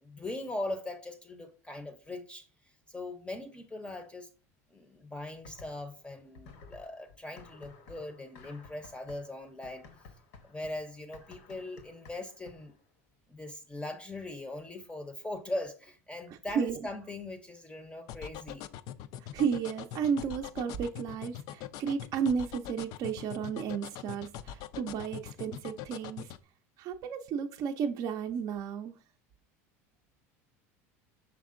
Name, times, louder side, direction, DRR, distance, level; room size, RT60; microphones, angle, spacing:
voice 1, 0.0-2.5 2.9-4.3 4.7-9.9 10.4-12.8 13.3-18.7, left 2 dB, 15° left, 0.6 m, -40 dB
sound 1, 5.4-6.0 6.3-12.8, left 4 dB, 75° left, 0.9 m, -54 dB
sound 2, 18.1-26.4, left 11 dB, 55° left, 0.3 m, -42 dB
voice 2, 19.3-26.3 26.8-29.0, right 7 dB, 50° right, 0.5 m, -33 dB
5.9 x 3.5 x 2.5 m
hypercardioid pair, 95°, 8 cm